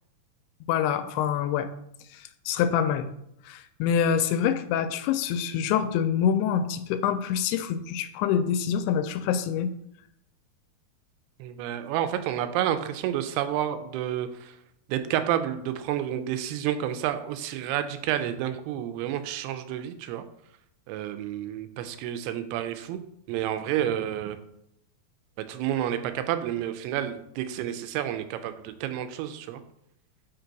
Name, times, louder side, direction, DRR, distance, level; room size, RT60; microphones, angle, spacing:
voice 1, 0.7-1.7 2.1-3.1 3.5-9.7, left 8 dB, 85° left, 10 dB, 2.6 m, -26 dB
voice 2, 11.4-14.6 14.9-20.2 20.9-23.0 23.3-24.4 25.4-29.6, right 11 dB, 90° right, 10 dB, 2.6 m, -30 dB
5.9 x 3.9 x 4.6 m, 0.76 s
omnidirectional pair, 4.5 m